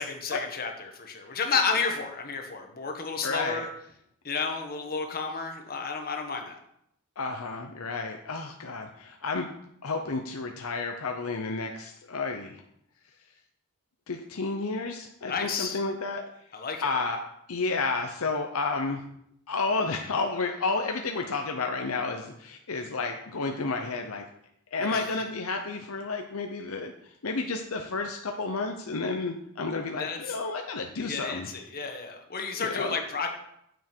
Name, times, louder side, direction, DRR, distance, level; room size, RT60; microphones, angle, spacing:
voice 1, 0.0-3.7 4.2-6.6 15.2-15.8 16.5-16.9 24.8-25.1 29.9-30.4 31.0-33.3, left 5 dB, 45° left, 3 dB, 1.4 m, -31 dB
voice 2, 3.2-3.6 7.2-9.5 9.8-12.6 14.1-16.2 16.8-17.2 17.5-19.0 19.5-24.2 24.7-26.9 27.2-31.5 32.6-33.0, left 3 dB, 70° left, 4 dB, 0.8 m, -31 dB
9.1 x 7.2 x 4.5 m, 0.75 s
head